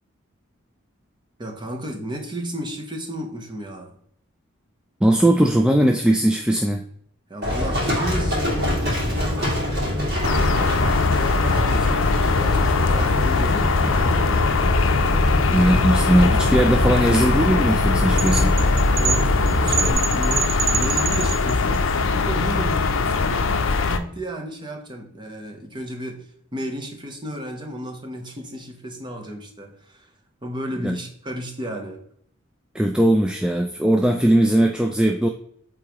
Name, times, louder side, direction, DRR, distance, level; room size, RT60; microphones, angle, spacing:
voice 1, 1.4-3.9 7.3-14.3 19.0-30.1 30.4-32.0, right 1 dB, 20° right, 3 dB, 0.9 m, -34 dB
voice 2, 5.0-6.8 15.5-18.5 30.8-31.0 32.7-35.3, right 1 dB, 5° right, 3 dB, 0.3 m, -19 dB
Livestock farm animals working animals, 7.4-19.9, left 1 dB, 50° right, 2.5 m, -24 dB
sound 1, 10.2-24.0, left 4 dB, 70° left, 0.5 m, -21 dB
sound 2, 18.2-21.8, right 6 dB, 70° right, 0.6 m, -26 dB
8.5 x 3.7 x 3.0 m, 0.66 s
head